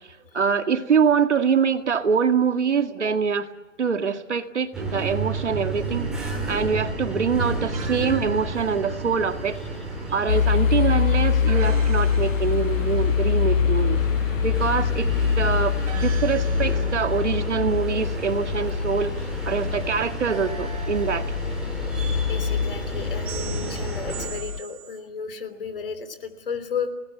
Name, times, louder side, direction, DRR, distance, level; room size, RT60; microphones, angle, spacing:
voice 1, 0.3-3.5 3.8-9.6 10.1-14.0 14.4-19.2 19.5-21.3, right 6 dB, 65° right, 7 dB, 2.1 m, -24 dB
sound 1, 4.7-24.3, right 2 dB, ahead, 2.4 m, -32 dB
sound 2, 7.7-8.3 11.5-13.2 15.9-17.3 20.3-21.7 23.3-25.0, right 8 dB, 30° right, 3.1 m, -41 dB
sound 3, 10.3-24.6, left 7 dB, 90° left, 0.9 m, -24 dB
voice 2, 22.3-26.9, left 6 dB, 45° left, 11 dB, 3.3 m, -33 dB
29.5 x 19.5 x 8.5 m, 1.1 s
hypercardioid pair, 175°, 38 cm